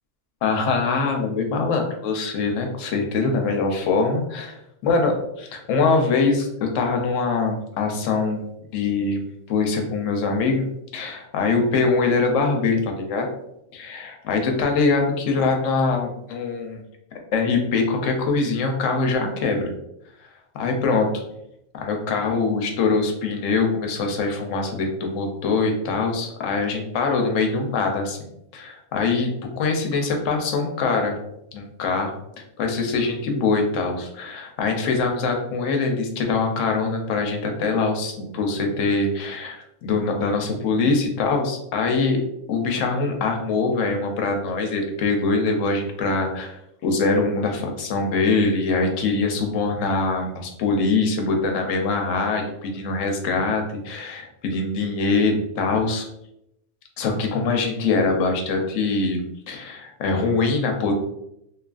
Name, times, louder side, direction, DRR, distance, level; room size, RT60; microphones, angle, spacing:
voice 1, 0.4-4.6 4.8-8.4 8.7-9.2 9.5-10.7 10.9-13.3 13.7-16.8 17.3-19.7 20.6-21.1 21.7-29.3 29.6-31.2 31.5-32.1 32.6-42.2 42.5-56.0 57.0-59.2 59.5-60.9, left 4 dB, 80° left, 3 dB, 0.9 m, -23 dB
2.8 x 2.3 x 2.4 m, 0.82 s
omnidirectional pair, 1.3 m